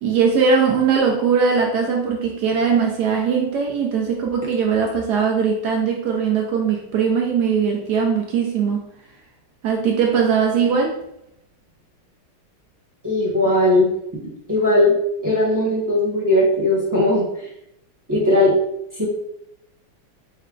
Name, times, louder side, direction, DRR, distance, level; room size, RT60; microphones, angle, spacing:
voice 1, 0.0-8.8 9.6-11.0, right 6 dB, 75° right, 1 dB, 0.9 m, -20 dB
voice 2, 13.0-13.9 14.5-14.9 15.2-17.3 18.1-18.5 19.0-19.1, left 1 dB, 15° right, -6 dB, 0.7 m, -18 dB
4.3 x 2.2 x 3.7 m, 0.79 s
omnidirectional pair, 2.2 m